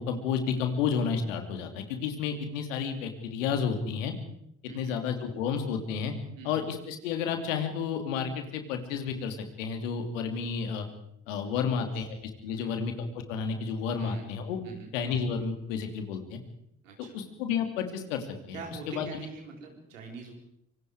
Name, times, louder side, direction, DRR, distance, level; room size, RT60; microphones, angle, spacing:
voice 1, 0.0-4.1 4.7-6.1 6.4-10.8 11.3-12.2 12.4-14.6 14.9-16.4 17.0-18.6 18.9-19.1, left 6 dB, 80° left, 6 dB, 3.0 m, -31 dB
voice 2, 4.7-5.0 6.4-6.6 11.6-12.0 12.6-12.8 14.0-14.3 14.6-14.9 16.8-17.2 18.5-20.3, right 4 dB, 85° right, 2 dB, 4.4 m, -43 dB
25.5 x 25.0 x 4.9 m, 0.73 s
hypercardioid pair, 50°, 37 cm